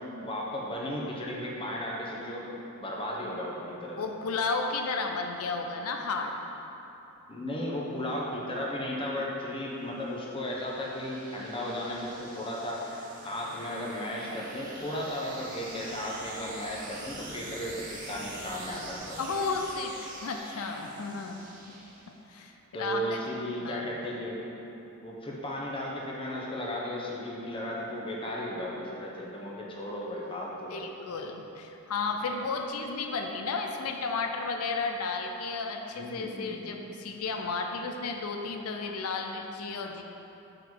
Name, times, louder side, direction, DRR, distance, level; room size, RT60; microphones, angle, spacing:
voice 1, 0.0-4.0 7.3-19.3 22.7-24.4 25.0-30.8 36.0-36.7, left 1 dB, 25° left, -3 dB, 0.9 m, -35 dB
voice 2, 4.0-6.3 19.2-21.4 22.1-23.2 23.6-23.9 30.7-40.0, left 4 dB, 80° left, 4 dB, 0.5 m, -33 dB
sound 1, 9.0-22.4, right 2 dB, 35° right, 1.0 m, -45 dB
7.2 x 5.6 x 3.8 m, 3.0 s
head